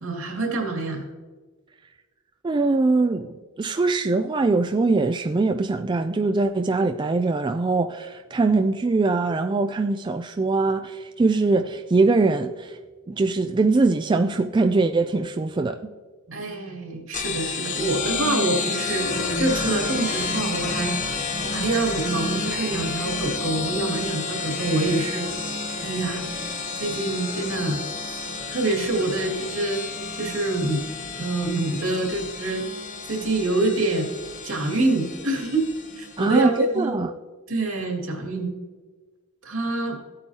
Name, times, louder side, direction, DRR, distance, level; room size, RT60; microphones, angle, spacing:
voice 1, 0.0-1.0 16.3-21.0 21.4-25.3 25.8-26.2 26.7-27.8 28.1-28.2 28.5-29.8 30.1-30.8 31.2-32.7 33.0-34.1 34.4-35.7 36.0-36.9 37.5-38.5 39.4-40.0, right 2 dB, 75° right, 2.3 m, -26 dB
voice 2, 2.4-12.8 13.1-15.8 36.2-37.1, right 3 dB, 20° right, 0.3 m, -22 dB
sound 1, 17.1-36.3, left 4 dB, 35° left, 0.9 m, -30 dB
15.5 x 8.8 x 2.8 m
head